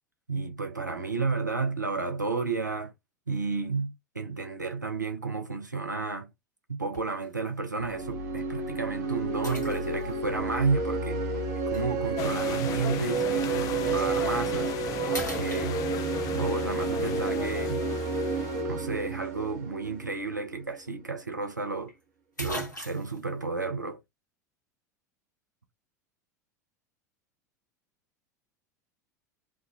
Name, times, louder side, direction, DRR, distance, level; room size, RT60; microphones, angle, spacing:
voice 1, 0.3-2.9 3.3-6.3 6.7-11.4 11.7-14.7 15.3-15.8 16.3-17.9 18.7-21.9 22.4-24.0, right 4 dB, 90° right, 0.7 m, -32 dB
sound 1, 6.9-7.3 7.9-8.0 9.4-10.3 11.7-11.9 14.0-14.2 14.6-14.8 15.1-16.2 20.3-20.4 20.7-20.8 21.9-22.0 22.4-23.2, left 1 dB, 85° left, 1.3 m, -39 dB
sound 2, 7.8-20.5, right 3 dB, 60° right, 1.0 m, -31 dB
sound 3, 12.2-18.6, left 11 dB, 40° left, 0.4 m, -37 dB
3.4 x 2.3 x 3.5 m
figure-of-eight pair, 80°, 10 cm